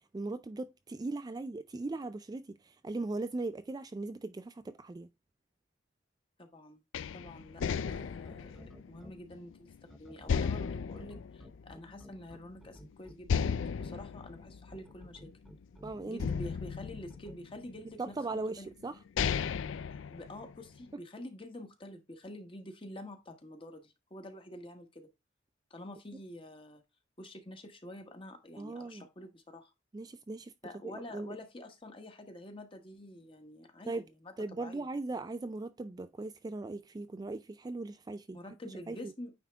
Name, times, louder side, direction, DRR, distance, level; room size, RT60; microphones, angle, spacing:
voice 1, 0.1-5.1 15.8-16.2 18.0-19.0 28.6-29.1 29.9-30.5 30.8-31.4 33.9-34.0 34.4-38.4 38.9-39.1, right 2 dB, 20° right, 0.3 m, -39 dB
voice 2, 6.4-6.8 7.1-15.3 16.0-18.7 20.1-25.1 25.7-26.8 27.2-29.7 30.6-34.3 34.6-34.9 38.3-39.3, left 1 dB, 30° left, 1.3 m, -48 dB
sound 1, 6.9-9.7 10.3-12.2 12.6-12.7 13.2-15.6 16.2-17.8 18.5-18.6 19.0-20.8, left 6 dB, 85° left, 0.4 m, -35 dB
sound 2, 7.8-9.1 9.9-13.9 14.7-16.3 17.1-17.4, equal, ahead, 0.7 m, -52 dB
9.2 x 3.6 x 3.5 m
head